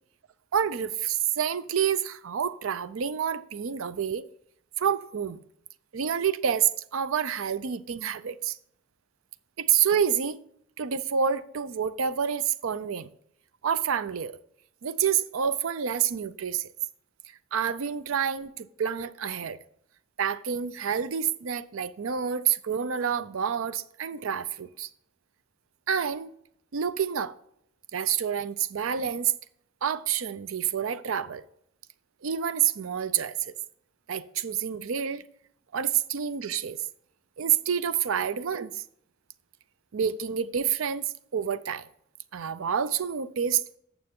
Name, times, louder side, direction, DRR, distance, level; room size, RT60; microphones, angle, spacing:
voice 1, 0.5-4.2 4.8-5.4 5.9-8.6 9.6-10.4 10.8-13.1 13.6-14.3 14.8-16.7 17.5-19.6 20.2-24.9 25.9-26.3 26.7-27.3 27.9-29.3 29.8-31.4 32.2-33.5 34.1-35.3 35.7-36.8 37.4-38.8 39.9-41.8 42.3-43.6, right 8 dB, 80° right, 0.5 m, -28 dB
9.0 x 6.8 x 3.6 m
head